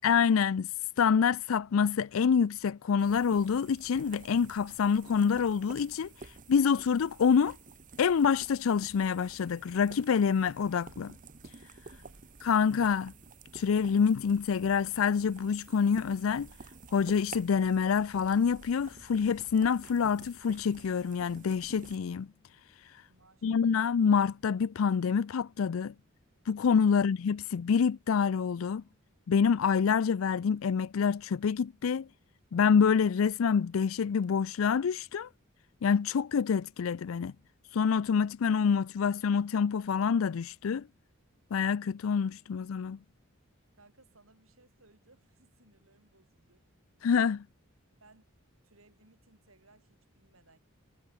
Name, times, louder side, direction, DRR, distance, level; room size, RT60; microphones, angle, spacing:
voice 1, 0.0-0.7 1.0-6.1 6.5-7.6 8.0-11.1 12.4-13.1 13.5-16.5 16.9-22.3 23.4-25.9 26.5-28.8 29.3-32.1 32.5-35.3 35.8-37.3 37.7-40.9 41.5-43.0 47.0-47.4, left 6 dB, 80° left, 0.4 m, -27 dB
sound 1, 3.0-22.0, right 3 dB, 40° right, 1.2 m, -51 dB
voice 2, 11.9-12.4 23.0-23.8 26.9-27.0 43.7-46.6 48.0-48.3 48.6-50.6, right 2 dB, 90° right, 7.2 m, -63 dB
head